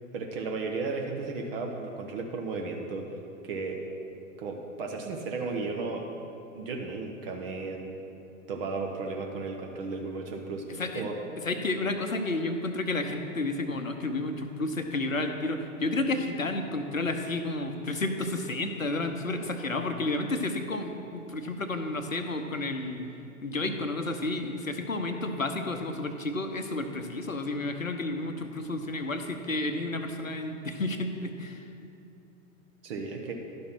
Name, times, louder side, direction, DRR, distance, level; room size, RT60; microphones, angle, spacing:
voice 1, 0.1-3.2 3.4-3.8 4.4-6.1 6.6-8.0 8.5-10.7 10.9-11.2 32.8-33.3, right 4 dB, 45° right, 2 dB, 1.0 m, -34 dB
voice 2, 11.4-23.0 23.4-31.6, left 2 dB, 85° left, 6 dB, 0.9 m, -31 dB
11.5 x 5.3 x 6.0 m, 2.7 s
figure-of-eight pair, 100°, 39 cm